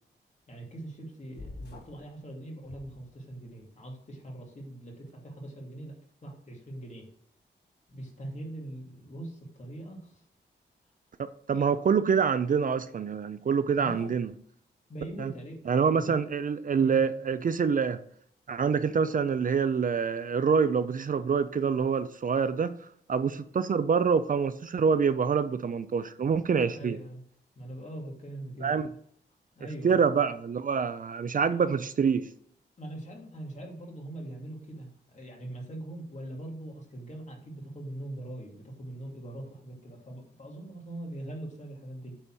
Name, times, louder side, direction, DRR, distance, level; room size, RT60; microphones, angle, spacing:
voice 1, 0.5-7.1 7.9-10.2 11.5-11.8 13.7-14.2 14.9-16.2 16.8-17.1 26.7-27.2 27.5-28.7 29.5-30.0 32.8-42.2, right 1 dB, 40° left, 2.6 m, -42 dB
sound 1, 1.3-2.1 2.6-3.5, left 2 dB, 65° left, 1.6 m, -46 dB
voice 2, 11.2-14.3 15.2-15.3 15.7-18.0 18.5-22.7 23.1-27.0 28.6-28.9 29.8-32.3, right 6 dB, 50° right, 0.5 m, -26 dB
8.9 x 4.1 x 6.3 m
wide cardioid pair, 110°, 19 cm